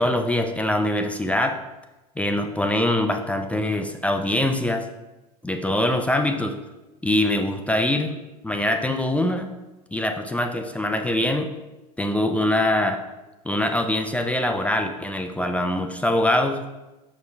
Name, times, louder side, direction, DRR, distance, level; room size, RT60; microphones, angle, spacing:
voice 1, 0.0-1.6 2.2-4.8 5.4-6.5 7.0-8.1 8.4-9.5 9.9-11.5 12.0-13.0 13.4-16.6, left 1 dB, 5° left, 5 dB, 0.5 m, -23 dB
5.5 x 5.2 x 3.3 m, 1.1 s
hypercardioid pair, 85°, 20 cm